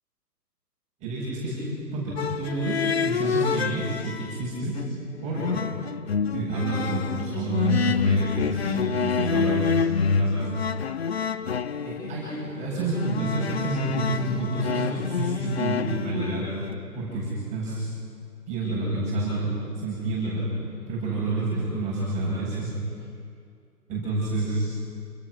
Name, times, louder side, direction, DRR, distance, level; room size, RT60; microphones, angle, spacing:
voice 1, 1.0-4.8 5.2-5.6 6.3-9.7 10.2-10.5 11.8-16.5 16.9-17.9 18.5-20.5 20.9-22.7 23.9-24.6, right 2 dB, 15° right, -9 dB, 7.4 m, -28 dB
sound 1, 2.2-4.4 4.7-16.7, left 6 dB, 40° left, 0.7 m, -28 dB
29.0 x 28.0 x 6.5 m, 2.3 s
figure-of-eight pair, 145°, 48 cm